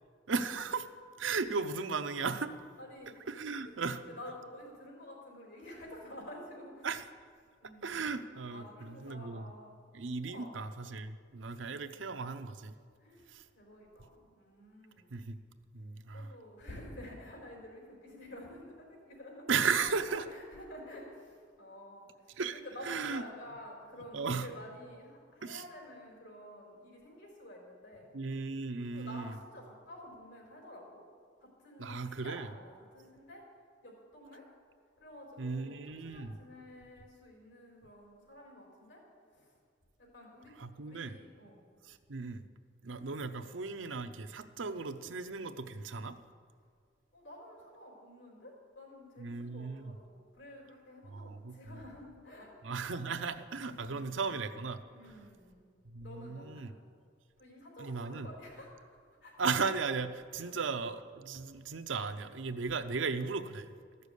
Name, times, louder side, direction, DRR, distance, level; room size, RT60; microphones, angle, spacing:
voice 1, 0.3-0.9 1.2-2.5 3.3-4.0 6.8-7.0 7.8-9.5 9.9-12.7 13.3-13.4 15.1-15.4 15.7-16.3 19.5-20.3 22.4-23.2 24.1-24.5 25.4-25.6 28.1-29.3 31.8-32.5 35.4-36.4 40.6-41.2 41.9-42.5 42.8-46.2 49.2-49.9 51.1-51.8 52.6-54.8 55.9-56.7 57.8-58.3 59.4-63.7, right 5 dB, 85° right, 9 dB, 0.7 m, -36 dB
voice 2, 2.8-3.2 4.0-6.9 7.6-8.1 8.5-9.8 10.2-10.6 11.9-12.1 13.0-15.2 16.1-28.1 28.9-31.0 31.4-33.4 33.8-34.4 35.0-39.0 39.3-39.5 40.0-41.6 43.4-43.5 47.1-52.5 53.6-54.1 54.9-55.7 56.0-56.7 57.4-58.9 59.2-59.3 60.4-60.6, left 1 dB, 80° left, -2 dB, 4.3 m, -50 dB
14.0 x 6.8 x 8.3 m, 2.1 s
head